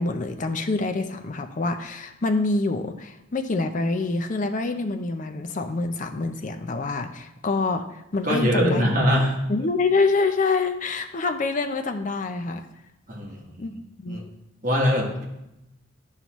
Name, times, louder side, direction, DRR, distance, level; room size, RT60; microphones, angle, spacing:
voice 1, 0.0-8.9 9.5-12.6 13.6-13.7 14.0-14.3, left 3 dB, 35° left, 6 dB, 0.5 m, -26 dB
voice 2, 8.2-9.4 13.1-13.8 14.1-14.2 14.6-15.2, equal, 40° right, -2 dB, 1.3 m, -23 dB
9.4 x 5.6 x 3.0 m, 0.91 s
head